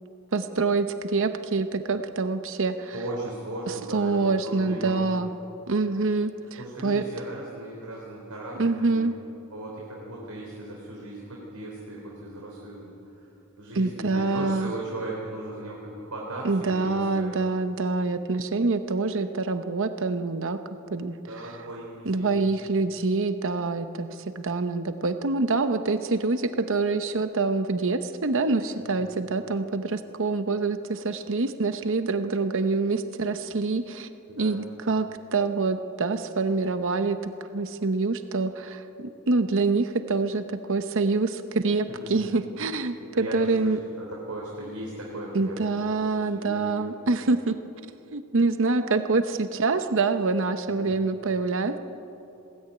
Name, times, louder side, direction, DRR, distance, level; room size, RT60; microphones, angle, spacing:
voice 1, 0.3-2.9 3.7-5.3 5.7-7.0 8.6-9.2 13.8-14.7 16.4-20.6 20.9-21.2 21.4-21.5 22.0-24.1 24.3-34.1 34.4-43.8 45.3-47.6 48.1-51.8, right 3 dB, 60° right, 9 dB, 0.9 m, -26 dB
voice 2, 2.9-5.0 6.6-9.1 9.5-13.3 13.6-17.3 21.3-22.4 28.8-29.0 34.3-34.8 41.9-42.2 43.0-46.7 50.7-50.9, right 1 dB, 85° right, -3 dB, 3.6 m, -37 dB
20.5 x 17.0 x 9.3 m, 2.9 s
head